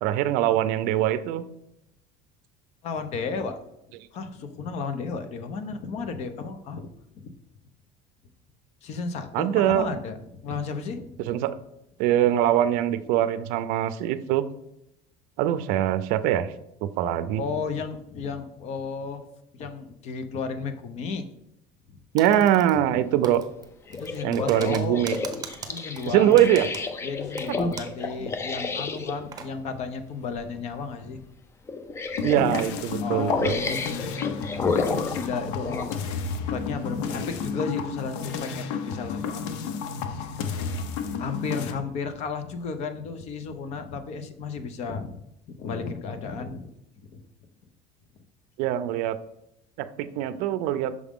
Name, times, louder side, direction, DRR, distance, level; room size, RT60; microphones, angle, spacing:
voice 1, 0.0-1.4 9.3-9.9 11.3-11.6 12.0-14.4 15.4-16.5 16.8-17.4 22.1-23.4 24.2-25.2 26.1-26.7 32.2-33.6 48.6-49.2 49.8-50.9, right 12 dB, 65° right, 13 dB, 0.5 m, -23 dB
voice 2, 2.8-3.6 4.1-7.3 8.8-11.1 17.4-19.2 19.5-21.3 21.9-22.0 23.9-25.1 25.6-26.5 27.0-31.3 33.0-39.8 40.2-40.4 41.2-46.7 47.1-47.3, left 5 dB, 45° left, 9 dB, 0.7 m, -33 dB
Typing, 22.2-23.0 23.2-28.1 28.3-28.4 28.9-29.5, right 6 dB, 25° right, 0.7 m, -41 dB
sound 1, 23.9-29.2 30.2-30.4 30.8-30.9 31.7-32.7 33.3-36.0 36.6-36.7, left 3 dB, 15° left, 0.4 m, -31 dB
sound 2, 32.2-41.7, left 5 dB, 90° left, 0.7 m, -32 dB
6.2 x 4.9 x 3.6 m, 0.81 s
cardioid pair, 150°, 15 cm